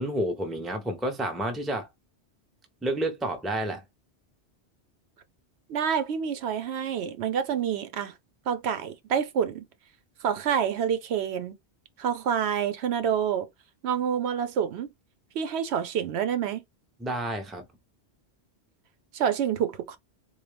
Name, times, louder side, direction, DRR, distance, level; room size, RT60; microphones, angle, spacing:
voice 1, 0.0-1.9 2.8-3.8 17.0-17.7, right 1 dB, ahead, 0.5 m, -30 dB
voice 2, 5.7-8.1 8.5-9.6 10.2-11.5 12.0-13.5 13.8-14.9 15.3-16.6 19.1-20.0, right 8 dB, 75° right, 0.8 m, -27 dB
4.0 x 2.3 x 3.3 m
omnidirectional pair, 1.2 m